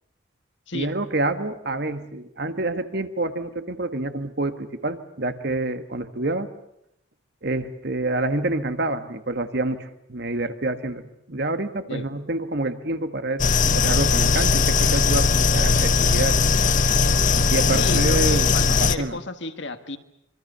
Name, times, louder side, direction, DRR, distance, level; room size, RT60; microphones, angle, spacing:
voice 1, 0.7-6.5 7.4-11.0 11.3-13.4 13.7-16.4 17.5-19.2, right 2 dB, 50° right, 9 dB, 1.6 m, -27 dB
sound 1, 13.4-19.0, left 4 dB, 40° left, 0.9 m, -19 dB
voice 2, 17.7-20.0, left 3 dB, 60° left, 8 dB, 1.7 m, -33 dB
26.0 x 24.0 x 6.9 m, 0.78 s
head